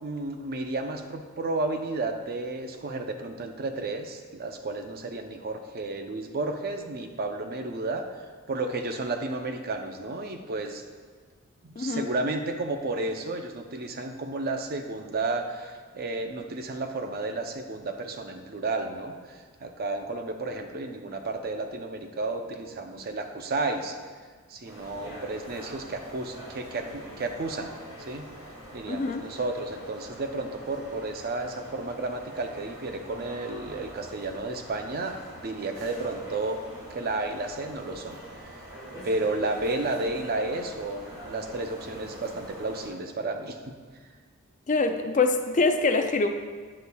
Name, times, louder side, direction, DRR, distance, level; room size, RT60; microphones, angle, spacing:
voice 1, 0.0-8.0 8.5-10.8 11.6-24.0 24.5-27.7 28.0-28.3 28.7-36.6 36.9-38.2 39.0-43.6, right 2 dB, 45° right, 5 dB, 0.6 m, -32 dB
voice 2, 11.8-12.1 28.9-29.3 44.7-46.3, left 3 dB, 35° left, 7 dB, 0.4 m, -24 dB
sound 1, 24.6-42.9, right 1 dB, 20° right, 2.0 m, -44 dB
9.7 x 8.1 x 2.3 m, 1.5 s
head